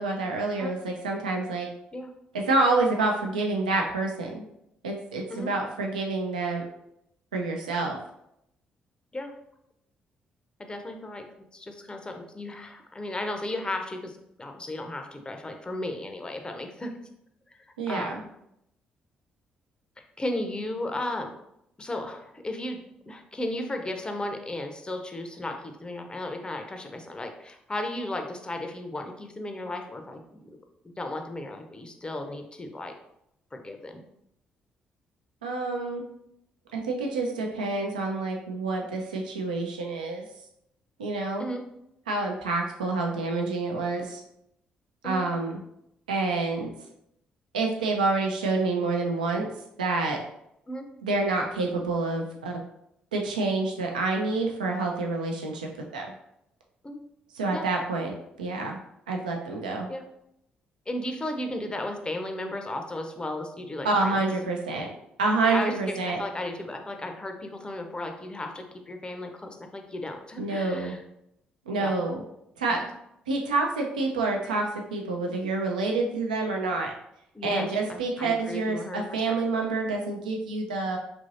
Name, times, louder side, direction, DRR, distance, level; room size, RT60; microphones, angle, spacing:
voice 1, 0.0-1.7 2.3-4.4 4.8-6.6 7.3-8.0 17.8-18.2 35.4-36.1 36.7-40.3 41.0-41.5 42.1-44.2 45.0-45.6 46.1-46.7 47.5-49.5 49.8-50.2 51.0-52.6 53.1-56.1 57.3-58.8 59.1-59.9 63.8-64.9 65.2-66.2 70.4-71.0 71.7-72.2 72.6-72.8 73.3-76.9 77.4-81.0, right 3 dB, 85° right, 1 dB, 0.4 m, -28 dB
voice 2, 10.6-11.3 11.5-16.9 17.9-18.3 20.0-21.3 21.8-22.8 23.1-30.6 30.8-32.9 33.5-34.0 41.4-41.6 45.0-45.3 50.7-50.9 56.8-57.0 57.5-57.7 59.9-60.0 60.9-64.3 65.4-71.0 71.7-71.9 72.7-72.9 77.3-79.3, left 1 dB, 20° left, 5 dB, 0.5 m, -35 dB
3.0 x 2.6 x 2.6 m, 0.78 s
figure-of-eight pair, 40°, 4 cm